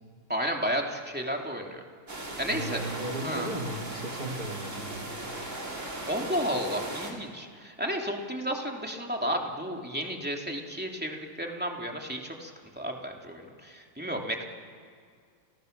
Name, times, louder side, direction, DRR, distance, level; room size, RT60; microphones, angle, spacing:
voice 1, 0.3-1.8 2.4-2.8 3.2-3.5 6.1-14.4, equal, 5° right, 1 dB, 2.8 m, -32 dB
sound 1, 2.1-7.1, right 1 dB, 50° right, 4.0 m, -38 dB
voice 2, 2.5-5.1, right 1 dB, 80° right, 1 dB, 3.8 m, -36 dB
30.0 x 29.5 x 6.7 m, 2.2 s
omnidirectional pair, 1.7 m